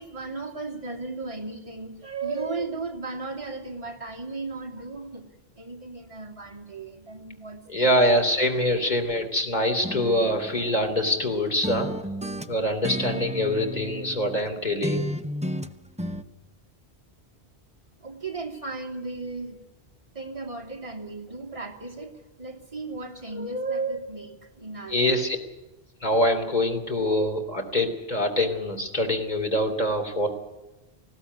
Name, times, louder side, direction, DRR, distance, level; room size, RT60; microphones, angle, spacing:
voice 1, 0.0-5.2 5.6-8.1 18.0-19.6 20.1-25.2, right 3 dB, 30° right, 2 dB, 2.8 m, -35 dB
voice 2, 7.7-11.9 12.5-15.1 24.9-25.4 26.0-30.3, left 1 dB, 40° left, 5 dB, 3.4 m, -24 dB
sound 1, 9.8-11.3 11.6-14.5 14.8-16.2, equal, 5° right, 0.7 m, -33 dB
20.0 x 16.0 x 9.6 m, 1.0 s
omnidirectional pair, 1.1 m